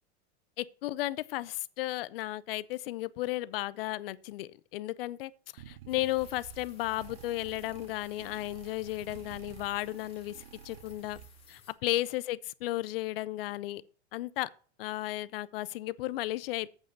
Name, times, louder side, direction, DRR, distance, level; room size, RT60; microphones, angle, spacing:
voice 1, 0.6-10.4 10.6-11.2 11.5-13.8 14.1-14.5 14.8-16.7, left 17 dB, 60° left, 0.5 m, -34 dB
sound 1, 5.6-11.6, right 10 dB, 60° right, 0.8 m, -50 dB
sound 2, 5.9-11.7, left 6 dB, 15° left, 1.4 m, -60 dB
8.2 x 5.3 x 6.7 m
supercardioid pair, 165°, 33 cm